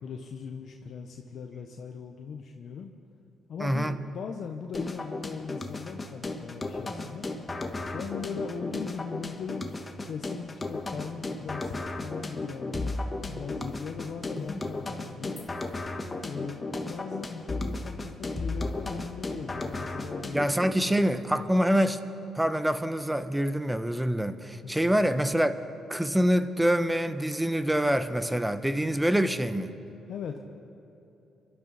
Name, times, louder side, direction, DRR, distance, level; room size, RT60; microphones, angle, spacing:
voice 1, 0.0-2.9 3.5-7.3 7.9-12.8 13.3-15.4 16.2-20.5 20.9-21.5 24.6-25.0 30.1-30.4, left 6 dB, 65° left, 2 dB, 0.9 m, -39 dB
voice 2, 3.6-4.0 20.3-22.0 22.3-25.5 25.9-29.7, equal, 5° right, 11 dB, 0.9 m, -25 dB
sound 1, 4.7-20.7, left 2 dB, 25° left, 1.4 m, -35 dB
27.0 x 12.0 x 4.1 m, 2.9 s
cardioid pair, 90°, 0 cm